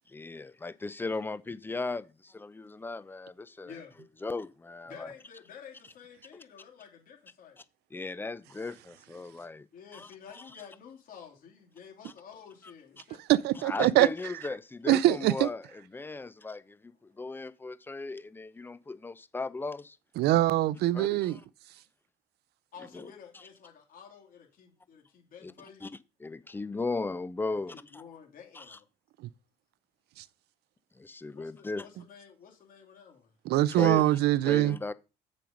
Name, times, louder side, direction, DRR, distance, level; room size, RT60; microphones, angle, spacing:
voice 1, 0.1-3.8 4.2-5.1 7.9-9.7 9.9-10.6 13.0-13.1 13.6-15.7 15.9-20.0 20.9-21.3 22.9-23.1 25.4-25.5 25.8-25.9 26.2-28.0 28.5-28.8 31.0-31.9 33.8-34.2 34.4-34.9, left 3 dB, 10° left, 0.5 m, -37 dB
voice 2, 3.6-4.0 4.9-7.6 9.7-14.3 22.7-25.9 27.7-28.8 31.3-33.3, left 7 dB, 55° left, 2.9 m, -51 dB
voice 3, 13.3-14.1 14.9-15.5 20.2-21.4 29.2-29.3 30.2-30.3 33.5-34.8, right 15 dB, 75° right, 0.5 m, -23 dB
7.5 x 5.3 x 5.2 m
cardioid pair, 110°, 17 cm